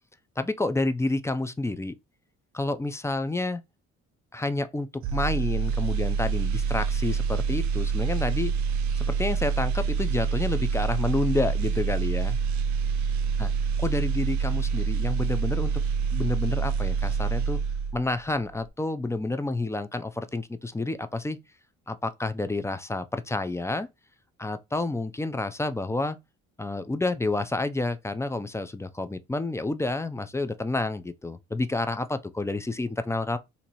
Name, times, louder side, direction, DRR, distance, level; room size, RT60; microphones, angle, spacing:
voice 1, 0.4-2.0 2.5-3.6 4.3-8.5 9.0-12.4 13.4-13.5 13.8-15.7 16.1-17.6 17.9-21.4 21.9-23.9 24.4-26.2 26.6-33.4, left 2 dB, 10° left, 0.4 m, -29 dB
sound 1, 5.0-18.2 18.5-18.7, right 6 dB, 70° right, 0.5 m, -26 dB
2.9 x 2.7 x 4.0 m
cardioid pair, 90°, 30 cm